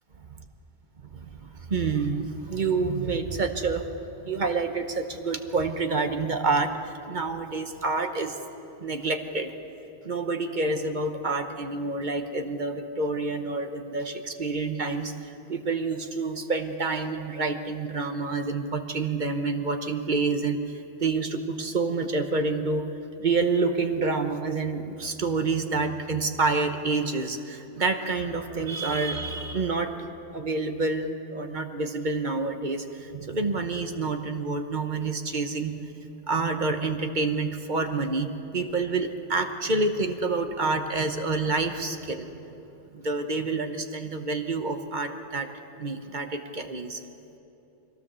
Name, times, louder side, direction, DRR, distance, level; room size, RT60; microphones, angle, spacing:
voice 1, 1.1-3.9 4.2-8.4 8.8-9.5 10.0-22.8 23.2-29.9 30.3-35.7 36.3-42.3 42.9-45.5 45.8-47.0, right 3 dB, 45° right, 6 dB, 1.2 m, -28 dB
22.5 x 16.5 x 6.9 m, 3.0 s
omnidirectional pair, 1.1 m